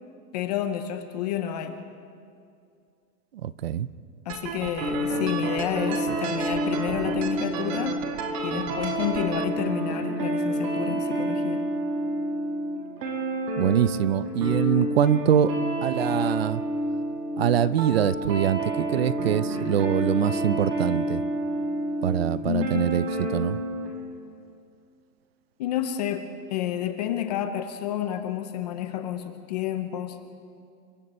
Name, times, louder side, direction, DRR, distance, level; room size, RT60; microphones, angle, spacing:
voice 1, 0.3-1.8 4.2-8.0 8.4-11.7 22.4-22.9 25.6-30.2, left 10 dB, 25° left, 8 dB, 0.7 m, -30 dB
voice 2, 3.4-3.9 13.6-15.5 15.8-16.6 17.4-21.2 22.0-23.6, right 10 dB, 40° right, 18 dB, 0.4 m, -24 dB
sound 1, 4.3-9.4, right 7 dB, 20° right, 0.8 m, -34 dB
sound 2, 4.8-23.9, right 1 dB, 90° right, 5.9 m, -29 dB
29.0 x 23.0 x 4.3 m, 2.4 s
supercardioid pair, 170°, 48 cm